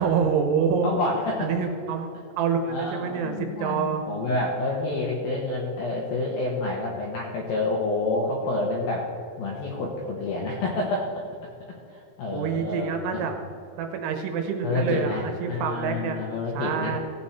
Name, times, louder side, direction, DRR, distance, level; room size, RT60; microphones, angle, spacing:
voice 1, 0.0-0.9 1.4-4.1 12.3-13.4 13.8-16.2 16.5-17.0, right 6 dB, 80° right, 5 dB, 3.2 m, -27 dB
voice 2, 0.8-1.5 2.7-9.1 9.4-11.1 11.9-13.2 14.6-17.0, left 2 dB, 75° left, -1 dB, 2.2 m, -28 dB
16.0 x 8.3 x 4.2 m, 2.6 s
omnidirectional pair, 5.8 m